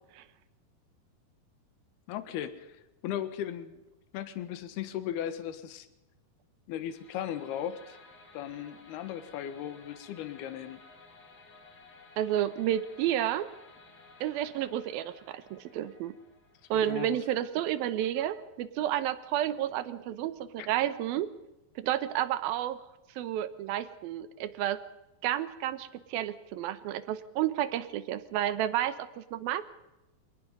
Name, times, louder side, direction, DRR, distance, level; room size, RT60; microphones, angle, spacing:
voice 1, 2.1-3.8 4.1-5.9 6.7-8.0 8.3-10.8 16.7-17.2 20.6-20.7, left 10 dB, 75° left, 11 dB, 3.3 m, -37 dB
sound 1, 6.7-17.7, left 3 dB, 35° left, 1.9 m, -56 dB
voice 2, 12.2-13.5 14.2-16.1 16.7-21.3 21.8-22.8 23.2-24.8 25.2-29.7, right 12 dB, 75° right, 13 dB, 2.6 m, -31 dB
26.5 x 19.0 x 5.4 m, 0.98 s
omnidirectional pair, 4.7 m